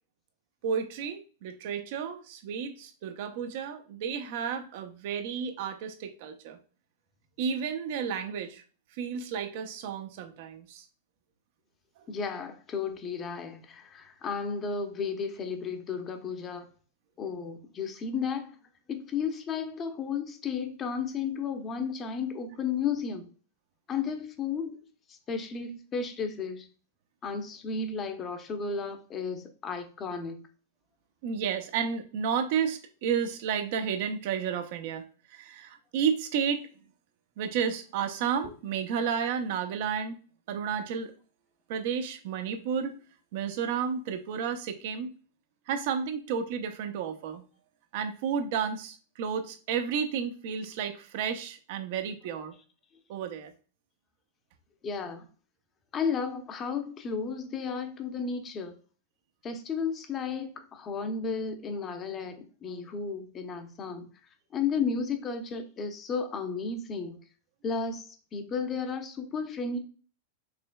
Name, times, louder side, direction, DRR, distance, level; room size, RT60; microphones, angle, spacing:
voice 1, 0.6-6.6 7.4-8.6 9.0-10.8 12.0-12.1 31.2-35.0 35.3-36.7 37.4-40.1 40.5-41.1 41.7-42.9 43.3-45.1 45.7-47.4 47.9-52.5 53.1-53.5, right 7 dB, 60° right, 0.7 m, -32 dB
voice 2, 12.1-16.7 17.2-18.5 18.9-23.3 23.9-24.8 25.1-26.7 27.2-30.4 54.8-55.3 55.9-58.7 59.4-64.1 64.5-67.2 67.6-69.8, left 5 dB, 30° left, 0.7 m, -33 dB
5.0 x 3.1 x 2.2 m
hypercardioid pair, 120°, 0 cm